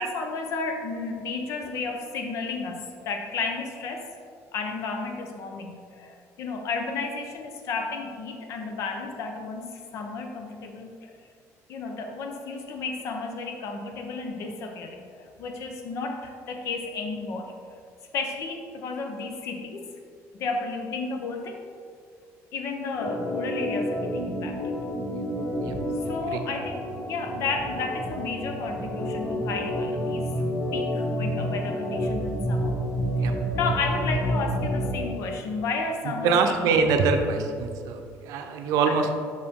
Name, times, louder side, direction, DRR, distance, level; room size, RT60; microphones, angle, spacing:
voice 1, 0.0-4.1 4.5-11.1 11.7-17.5 18.1-19.8 20.3-21.6 22.5-24.7 26.0-30.4 30.7-32.8 33.2-36.7 38.9-39.1, left 4 dB, 55° left, 4 dB, 0.7 m, -32 dB
Organ, 22.9-35.1, equal, 35° left, 1.3 m, -29 dB
voice 2, 36.0-39.1, right 5 dB, 75° right, 5 dB, 0.6 m, -24 dB
6.0 x 4.9 x 3.6 m, 2.2 s
cardioid pair, 160°, 6 cm